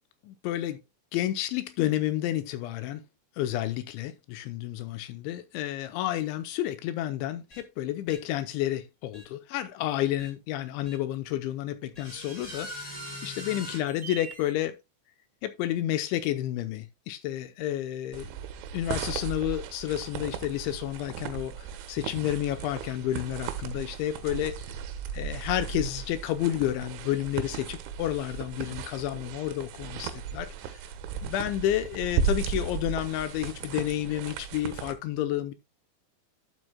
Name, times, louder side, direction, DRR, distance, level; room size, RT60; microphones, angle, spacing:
voice 1, 0.2-0.8 1.1-3.0 3.4-14.8 15.4-18.3 18.7-24.6 25.2-30.5 31.2-35.5, left 13 dB, 85° left, 3.0 m, -30 dB
sound 1, 7.5-7.6 8.1-8.2 9.1-9.2 10.2-10.3 10.8-11.0 11.9-14.5, right 1 dB, 15° left, 1.6 m, -41 dB
sound 2, 18.1-34.9, right 7 dB, 85° right, 3.3 m, -36 dB
12.0 x 7.8 x 2.2 m
omnidirectional pair, 5.4 m